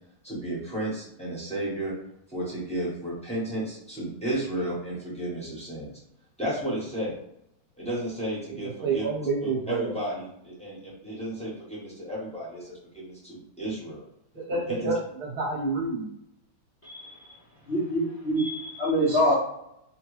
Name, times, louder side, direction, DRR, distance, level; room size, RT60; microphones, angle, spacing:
voice 1, 0.2-1.9 2.3-5.9 6.4-7.1 7.8-14.0 14.7-14.9, right 1 dB, 5° left, -8 dB, 0.8 m, -33 dB
voice 2, 8.6-9.9 14.3-16.1, right 3 dB, 55° right, -5 dB, 1.3 m, -29 dB
voice 3, 16.8-17.3 17.7-19.3, equal, 55° left, -7 dB, 0.7 m, -25 dB
3.1 x 2.2 x 3.2 m, 0.77 s
omnidirectional pair, 2.1 m